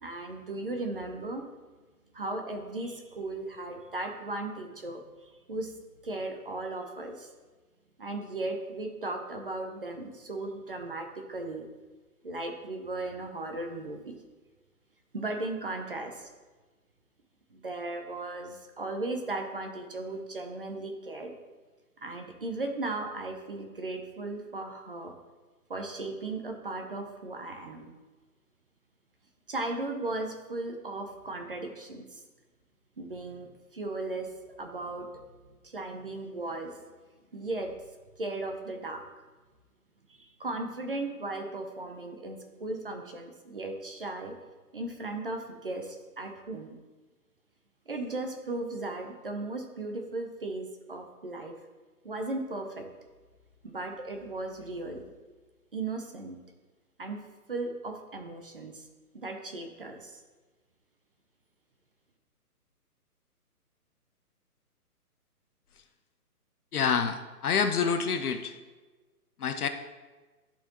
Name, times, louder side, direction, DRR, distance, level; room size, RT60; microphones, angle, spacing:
voice 1, 0.0-1.5 2.1-7.3 8.0-11.7 12.2-14.2 15.1-16.3 17.5-21.4 22.0-25.1 25.7-27.9 29.5-32.2 33.0-34.3 34.6-35.1 35.6-36.9 37.3-37.7 38.2-39.0 40.1-44.3 44.7-46.8 47.9-51.5 52.0-52.9 53.6-55.1 55.7-56.4 57.0-57.2 57.5-58.9 59.1-60.2, right 2 dB, 35° right, 4 dB, 0.6 m, -36 dB
voice 2, 66.7-68.5 69.4-69.7, left 6 dB, 70° left, 9 dB, 0.9 m, -27 dB
12.0 x 4.4 x 3.0 m, 1.3 s
hypercardioid pair, 175°, 46 cm